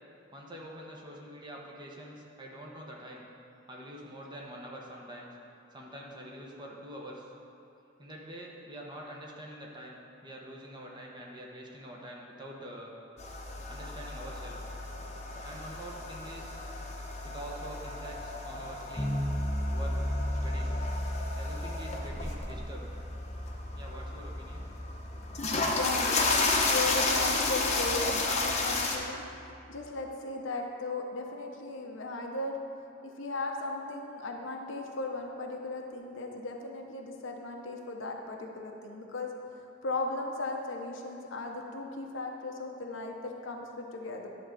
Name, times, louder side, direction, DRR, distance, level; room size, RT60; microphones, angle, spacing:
voice 1, 0.3-3.3 3.7-5.4 5.7-7.3 8.0-12.9 13.7-14.6 15.4-16.6 17.2-19.1 19.7-20.1 20.4-20.8 21.4-23.0 23.7-24.6, right 1 dB, 25° right, -2 dB, 1.1 m, -45 dB
sound 1, 13.2-29.0, left 3 dB, 35° left, 1.0 m, -33 dB
sound 2, 19.0-29.9, equal, 5° left, 0.6 m, -36 dB
voice 2, 25.7-32.5 33.2-39.3 39.8-44.3, left 2 dB, 75° left, 2 dB, 0.9 m, -36 dB
11.0 x 3.8 x 6.8 m, 2.8 s
head